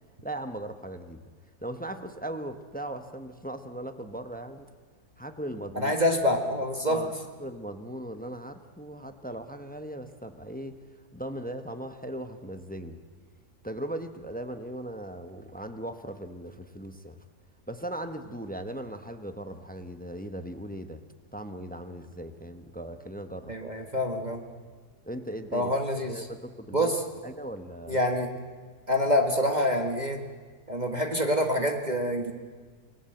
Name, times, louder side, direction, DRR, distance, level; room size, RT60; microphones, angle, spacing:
voice 1, 0.2-1.2 1.6-4.7 5.2-6.0 6.8-7.1 7.4-10.8 11.1-13.0 13.6-17.1 17.7-21.0 21.3-23.5 25.0-25.7 26.1-26.9 27.2-28.0, right 1 dB, 5° left, 8 dB, 0.9 m, -38 dB
voice 2, 5.7-7.0 23.5-24.4 25.5-26.3 26.7-27.0 27.9-28.3 28.9-30.2 30.7-32.3, equal, 30° right, 3 dB, 1.7 m, -26 dB
29.0 x 19.0 x 7.8 m, 1.5 s
omnidirectional pair, 1.7 m